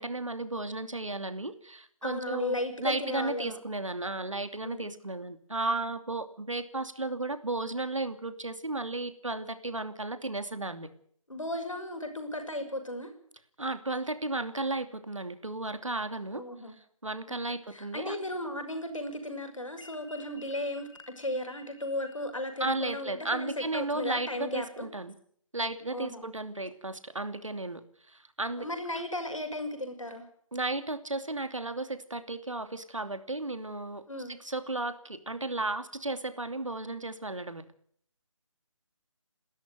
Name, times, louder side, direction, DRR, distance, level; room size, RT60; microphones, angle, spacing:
voice 1, 0.0-10.9 13.6-16.4 17.0-18.2 22.6-25.1 25.5-27.8 28.1-28.7 30.5-37.6, right 2 dB, 70° right, 10 dB, 2.8 m, -34 dB
voice 2, 2.0-3.6 4.6-4.9 11.3-13.1 16.3-16.7 17.3-24.9 25.9-26.3 28.6-30.3 34.1-34.4, left 1 dB, 70° left, 6 dB, 5.8 m, -35 dB
sound 1, 19.8-23.9, left 4 dB, 55° left, 5.9 m, -55 dB
28.5 x 13.0 x 8.0 m, 0.62 s
figure-of-eight pair, 155°, 17 cm